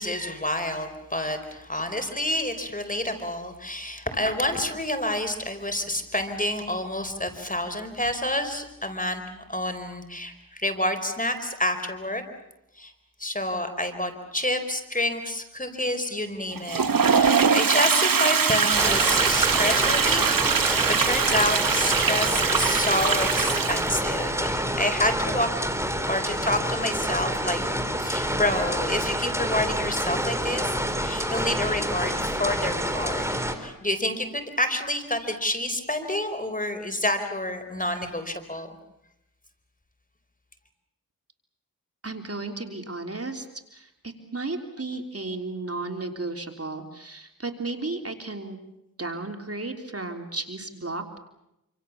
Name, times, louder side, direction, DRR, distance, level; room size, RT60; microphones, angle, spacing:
voice 1, 0.0-9.2 9.5-12.2 12.8-12.9 13.2-25.5 26.1-27.6 28.0-30.8 31.0-38.7, left 1 dB, 25° left, 8 dB, 4.4 m, -28 dB
Toilet flush, 16.5-24.2, right 6 dB, 80° right, 1.1 m, -22 dB
sound 1, 18.7-33.6, equal, 10° right, 4.0 m, -28 dB
voice 2, 42.0-43.5 43.7-48.6 49.0-51.2, right 3 dB, 45° right, 5 dB, 3.5 m, -34 dB
27.5 x 26.5 x 7.2 m, 0.85 s
cardioid pair, 40°, 34 cm